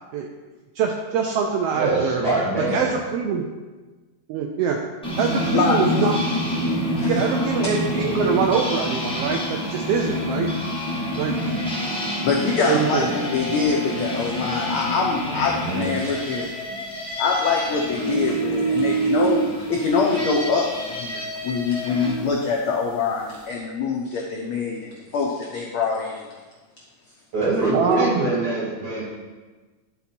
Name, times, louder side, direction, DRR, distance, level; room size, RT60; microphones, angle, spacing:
voice 1, 0.8-2.2 2.7-3.5 4.3-4.8 5.2-6.4 7.1-10.5 11.2-11.4 12.7-13.1 27.7-28.2, right 6 dB, 85° right, 2 dB, 1.4 m, -24 dB
voice 2, 1.7-2.9 15.2-15.9 27.3-29.0, right 2 dB, 50° right, -8 dB, 3.6 m, -24 dB
sound 1, 5.0-22.2, right 1 dB, 5° left, 0.4 m, -27 dB
voice 3, 12.2-16.5 17.2-26.3, left 5 dB, 85° left, -1 dB, 1.2 m, -24 dB
11.5 x 4.1 x 4.3 m, 1.3 s
omnidirectional pair, 3.3 m